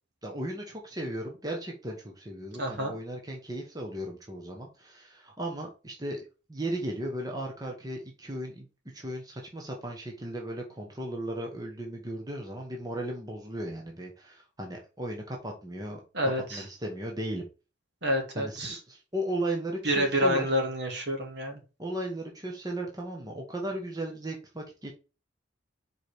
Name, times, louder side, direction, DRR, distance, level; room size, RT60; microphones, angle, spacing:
voice 1, 0.2-6.2 6.5-17.4 18.3-20.5 21.8-24.9, right 1 dB, 20° right, 0 dB, 1.2 m, -36 dB
voice 2, 2.6-3.0 16.1-16.6 18.0-18.8 19.8-21.6, equal, 60° right, 2 dB, 2.4 m, -28 dB
5.1 x 4.7 x 5.1 m, 0.32 s
head